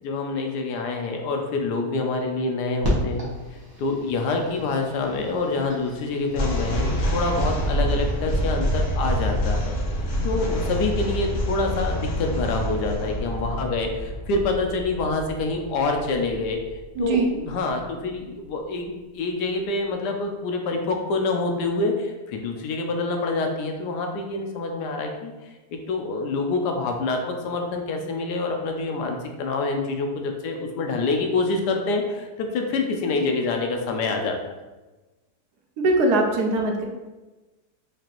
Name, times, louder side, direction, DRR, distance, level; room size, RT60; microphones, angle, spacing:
voice 1, 0.0-3.3 3.8-9.8 10.2-16.6 17.0-34.4, left 3 dB, 80° left, 3 dB, 1.2 m, -26 dB
sound 1, 2.8-8.5, equal, 20° right, 0.6 m, -34 dB
sound 2, 6.3-17.6, equal, 55° left, 1.0 m, -27 dB
voice 2, 17.0-17.3 35.8-36.9, right 2 dB, 75° right, 2 dB, 1.1 m, -21 dB
4.8 x 2.5 x 2.9 m, 1.2 s
omnidirectional pair, 1.8 m